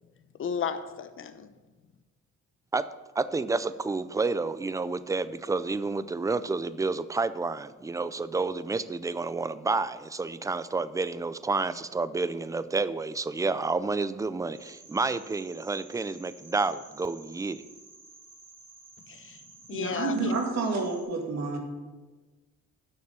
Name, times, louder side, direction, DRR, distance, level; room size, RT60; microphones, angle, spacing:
voice 1, 0.4-1.5 19.1-19.4 19.7-20.3, left 7 dB, 45° left, 9 dB, 0.9 m, -34 dB
voice 2, 3.2-17.6, right 3 dB, 10° right, 15 dB, 0.4 m, -30 dB
sound 1, 14.5-21.0, right 3 dB, 85° right, 3.7 m, -52 dB
voice 3, 19.7-21.6, right 3 dB, 60° right, 2 dB, 2.3 m, -29 dB
9.7 x 6.5 x 6.7 m, 1.3 s
cardioid pair, 90°, 30 cm